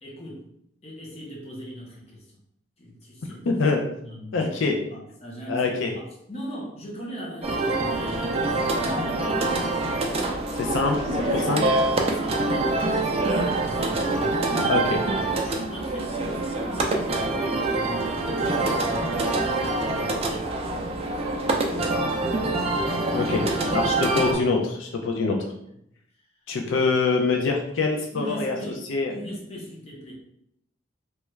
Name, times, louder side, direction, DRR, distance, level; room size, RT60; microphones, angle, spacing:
voice 1, 0.0-0.4 0.8-2.2 2.8-3.4 4.0-9.7 10.0-10.5 11.0-13.2 13.5-14.1 14.4-14.8 15.4-17.1 17.4-20.5 23.1-23.3 23.8-23.9 26.7-26.9 28.1-28.8 29.1-30.1, equal, 30° left, -3 dB, 0.8 m, -39 dB
voice 2, 3.5-3.8 4.3-4.8 5.5-5.9 10.6-11.0 11.5-11.6 14.7-15.0 23.1-23.4 23.7-25.4 26.5-28.6 28.9-29.1, left 4 dB, 80° left, 2 dB, 0.4 m, -24 dB
sound 1, 7.4-24.3, right 2 dB, 30° right, 0.3 m, -25 dB
3.1 x 2.3 x 3.1 m, 0.75 s
head